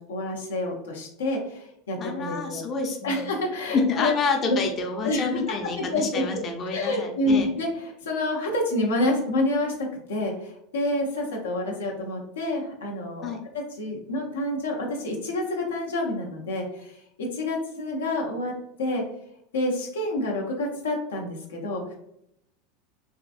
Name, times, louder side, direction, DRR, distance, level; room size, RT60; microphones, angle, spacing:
voice 1, 0.0-2.6 3.0-4.1 4.5-4.6 5.0-5.4 5.8-18.5 18.8-19.0 19.5-21.9, left 1 dB, 90° left, 0 dB, 0.8 m, -28 dB
voice 2, 2.0-3.2 3.7-7.5 13.2-13.4, left 4 dB, 35° left, 3 dB, 0.6 m, -28 dB
3.7 x 2.5 x 2.5 m, 0.76 s
hypercardioid pair, 95°, 0 cm